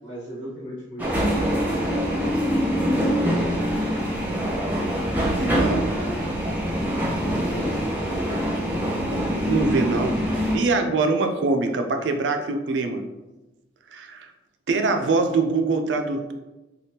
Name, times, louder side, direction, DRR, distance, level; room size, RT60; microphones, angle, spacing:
voice 1, 0.0-2.2 2.8-3.9 6.6-8.8 10.8-10.9, equal, 75° left, -9 dB, 1.4 m, -37 dB
sound 1, 1.0-10.6, equal, 10° right, 0.6 m, -24 dB
voice 2, 5.4-5.9 9.4-10.2 10.5-13.0 13.9-14.3 14.7-16.3, right 3 dB, 75° right, 6 dB, 0.4 m, -23 dB
3.4 x 2.3 x 2.8 m, 1.1 s
head